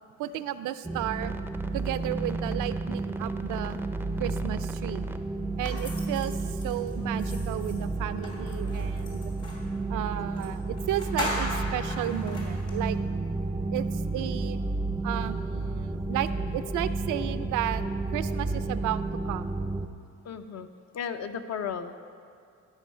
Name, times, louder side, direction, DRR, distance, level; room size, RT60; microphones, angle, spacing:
voice 1, 0.2-1.4 1.7-3.8 4.2-5.1 5.6-9.3 9.9-13.0 13.7-14.6 15.0-17.8 18.1-19.7, right 12 dB, 85° right, 12 dB, 0.5 m, -33 dB
sound 1, 0.8-19.9, right 3 dB, 10° right, 0.4 m, -31 dB
sound 2, 5.6-9.7 10.4-10.5 10.8-12.8, left 2 dB, 80° left, 2.7 m, -38 dB
voice 2, 20.2-20.7 20.9-22.1, left 7 dB, 60° left, 8 dB, 0.7 m, -35 dB
12.5 x 5.4 x 5.6 m, 2.3 s
cardioid pair, 90°, 30 cm